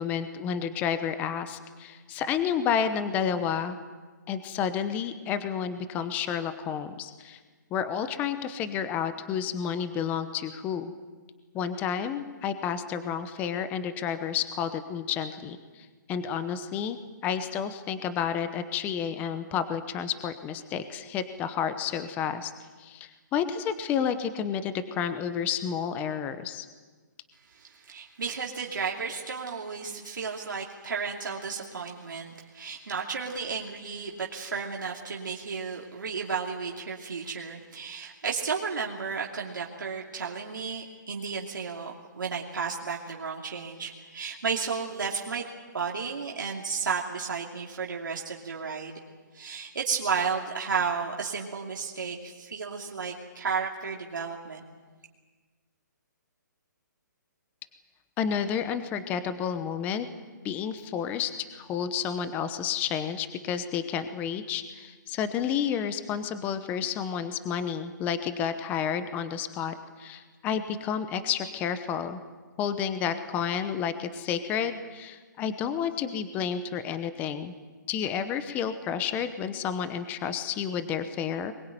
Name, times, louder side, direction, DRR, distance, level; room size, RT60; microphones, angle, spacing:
voice 1, 0.0-3.8 4.3-7.4 7.7-10.9 11.5-17.0 17.2-22.5 22.8-26.7 58.2-60.1 60.4-72.2 72.6-77.5 77.9-81.5, left 8 dB, 15° left, 11 dB, 0.9 m, -30 dB
voice 2, 27.5-45.5 45.7-49.0 49.3-54.6, right 5 dB, 85° right, -2 dB, 2.8 m, -33 dB
22.0 x 21.0 x 9.1 m, 1.4 s
hypercardioid pair, 160°, 10 cm